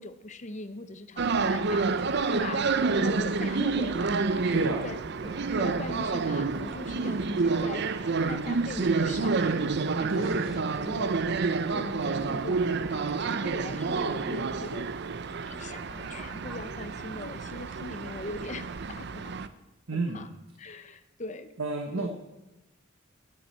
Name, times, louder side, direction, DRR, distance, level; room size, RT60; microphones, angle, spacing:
voice 1, 0.0-10.5 10.8-14.9 15.5-19.3 19.9-20.3 20.6-21.6 22.0-22.1, left 2 dB, 35° left, 10 dB, 0.7 m, -41 dB
sound 1, 1.2-19.5, right 4 dB, 55° right, 0.6 m, -29 dB
voice 2, 4.5-4.8 10.1-10.7 19.9-20.3 20.7-20.8 21.6-22.1, right 3 dB, 75° right, 4 dB, 1.1 m, -31 dB
sound 2, 5.2-16.6, right 1 dB, 20° right, 1.1 m, -49 dB
9.8 x 8.7 x 8.8 m, 1.0 s
head